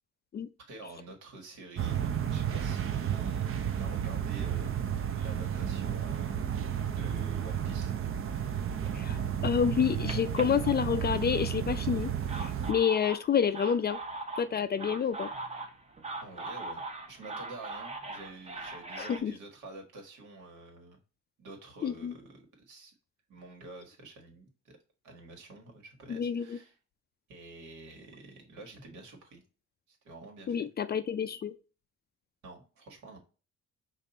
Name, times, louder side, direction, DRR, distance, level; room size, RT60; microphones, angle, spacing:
voice 1, 0.7-3.4 3.8-4.8 5.1-6.5 6.9-7.9 16.2-21.0 21.4-22.9 23.3-24.8 25.0-26.8 27.3-29.4 29.9-30.7 32.4-33.2, right 2 dB, 75° right, 1.6 m, -48 dB
sound 1, 1.8-12.7, right 9 dB, 45° right, 0.6 m, -32 dB
voice 2, 8.9-14.0 14.4-15.3 19.0-19.3 21.8-22.1 26.1-26.6 30.5-31.5, left 7 dB, 35° left, 0.4 m, -29 dB
sound 2, 9.7-11.3 12.0-19.2, right 3 dB, 20° right, 0.8 m, -41 dB
5.2 x 2.5 x 4.1 m
cardioid pair, 90°, 30 cm